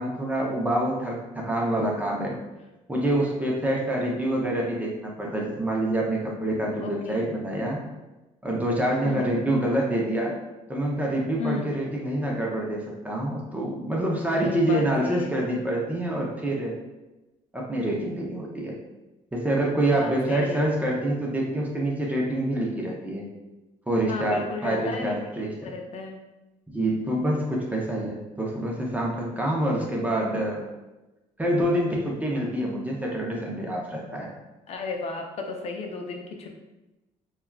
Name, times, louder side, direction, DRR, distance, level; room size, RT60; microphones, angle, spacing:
voice 1, 0.0-2.4 2.9-7.8 8.4-10.3 10.7-16.7 17.5-18.7 19.3-23.2 23.9-25.7 26.7-30.6 31.4-34.3, right 1 dB, 10° right, -3 dB, 0.6 m, -26 dB
voice 2, 6.8-7.3 9.0-9.3 11.4-11.7 14.3-15.3 19.9-20.6 24.1-26.2 34.7-36.5, left 3 dB, 50° left, 3 dB, 0.5 m, -34 dB
3.4 x 2.3 x 2.3 m, 1.0 s
cardioid pair, 100°, 14 cm